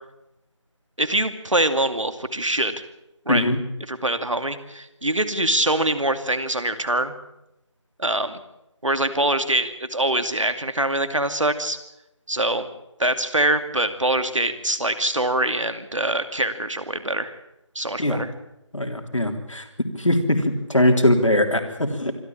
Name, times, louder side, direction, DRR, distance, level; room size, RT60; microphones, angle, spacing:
voice 1, 1.0-2.8 3.3-3.5 3.9-7.1 8.0-8.4 8.8-11.8 12.3-12.7 13.0-17.3 17.7-18.3, right 1 dB, 80° right, 10 dB, 2.5 m, -24 dB
voice 2, 3.3-3.6 18.0-18.2 18.7-19.7 20.0-22.1, left 1 dB, 85° left, 5 dB, 3.4 m, -21 dB
25.5 x 12.5 x 8.8 m, 0.89 s
figure-of-eight pair, 170°, 16 cm